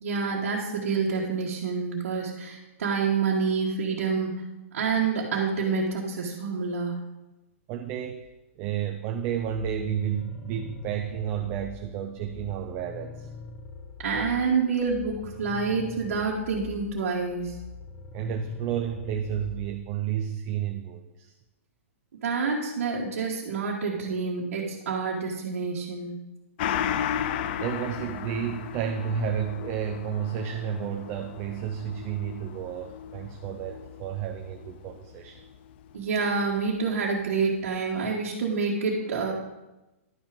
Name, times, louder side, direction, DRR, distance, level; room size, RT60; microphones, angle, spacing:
voice 1, 0.0-4.4 4.7-7.0 14.0-17.6 22.2-26.2 35.9-39.3, right 5 dB, 75° right, -4 dB, 1.6 m, -27 dB
voice 2, 7.7-8.3 8.6-13.3 18.1-21.3 26.7-27.0 27.6-35.4, right 9 dB, 30° right, 5 dB, 0.6 m, -31 dB
sound 1, 9.2-19.9, left 5 dB, 25° left, 1.1 m, -44 dB
Gong, 26.6-35.6 35.9-36.0, left 9 dB, 45° left, 0.6 m, -35 dB
11.0 x 5.9 x 5.1 m, 1.0 s
hypercardioid pair, 150°, 8 cm